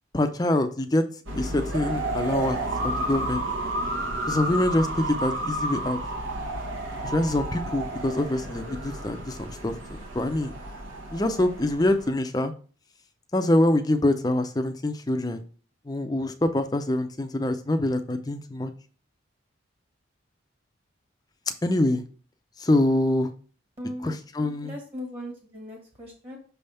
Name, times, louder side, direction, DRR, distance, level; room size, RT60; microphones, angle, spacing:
voice 1, 0.1-1.0 1.4-3.4 4.3-6.0 7.0-10.5 11.1-12.5 13.3-15.4 15.9-18.7 21.6-22.0 22.6-23.3 24.0-24.7, left 1 dB, 20° left, 8 dB, 0.5 m, -25 dB
sound 1, 1.3-12.1, right 1 dB, 80° right, 1.3 m, -31 dB
voice 2, 23.8-24.1 24.6-26.4, equal, 30° right, 0 dB, 1.4 m, -38 dB
6.2 x 3.4 x 5.5 m, 0.40 s
head